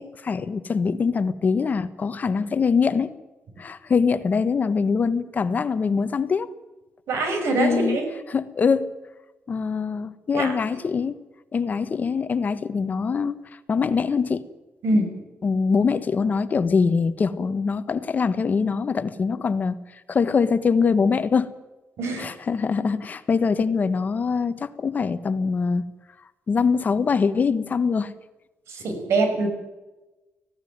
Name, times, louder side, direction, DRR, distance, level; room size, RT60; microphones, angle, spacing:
voice 1, 0.0-3.1 3.6-6.5 7.6-8.0 8.3-8.9 9.5-11.2 11.5-14.5 15.4-19.8 20.1-21.5 22.2-25.8 26.5-28.1, left 5 dB, 40° left, 12 dB, 1.2 m, -23 dB
voice 2, 7.1-8.0 10.3-10.6 14.8-15.1 22.0-22.3 28.7-29.5, right 2 dB, 85° right, 5 dB, 6.1 m, -23 dB
18.5 x 16.0 x 9.5 m, 1.1 s
cardioid pair, 125°, 4 cm